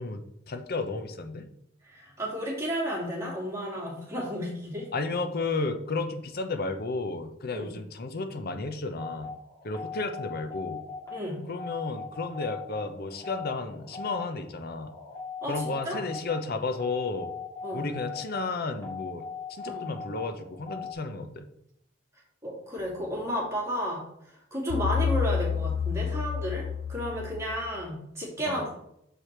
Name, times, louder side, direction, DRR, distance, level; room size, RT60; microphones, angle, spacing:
voice 1, 0.0-1.5 4.9-9.3 9.6-10.8 11.5-14.9 15.5-17.3 17.7-21.5 28.4-28.6, left 3 dB, 55° left, 8 dB, 0.7 m, -33 dB
voice 2, 1.8-4.9 7.5-7.7 11.1-11.4 15.4-16.0 17.6-17.9 19.6-19.9 22.4-28.8, equal, 15° right, -4 dB, 2.7 m, -33 dB
sound 1, 9.0-20.9, left 5 dB, 15° left, 2.2 m, -40 dB
sound 2, 24.7-27.8, left 7 dB, 85° left, 0.5 m, -29 dB
6.7 x 4.9 x 4.4 m, 0.76 s
head